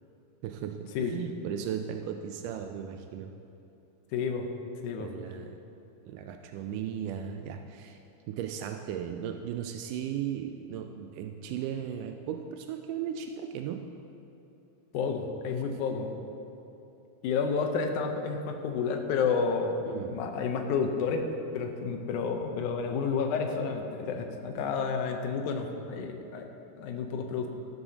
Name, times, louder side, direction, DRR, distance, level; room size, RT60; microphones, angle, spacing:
voice 1, 0.4-3.4 5.0-5.6 6.0-8.0 8.3-13.9 19.9-20.2, right 9 dB, 85° right, 6 dB, 2.1 m, -36 dB
voice 2, 4.1-4.5 4.8-5.1 14.9-16.1 17.2-19.8 20.1-21.3 21.5-26.5 26.8-27.5, left 5 dB, 75° left, 4 dB, 2.3 m, -30 dB
16.0 x 12.0 x 2.9 m, 2.8 s
omnidirectional pair, 3.7 m